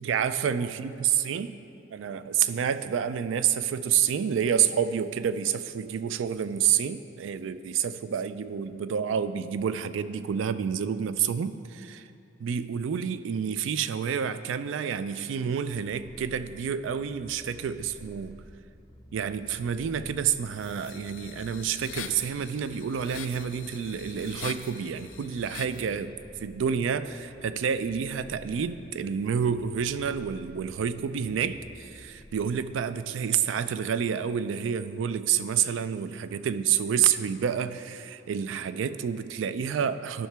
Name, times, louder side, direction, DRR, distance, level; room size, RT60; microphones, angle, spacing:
voice 1, 0.0-1.5 1.9-12.0 12.4-18.4 19.1-40.3, right 8 dB, 85° right, 13 dB, 0.3 m, -29 dB
Purr, 16.0-33.1, left 1 dB, 20° left, 0.5 m, -52 dB
sound 1, 20.6-25.9, left 8 dB, 85° left, 0.4 m, -43 dB
12.0 x 5.7 x 3.4 m, 2.7 s
head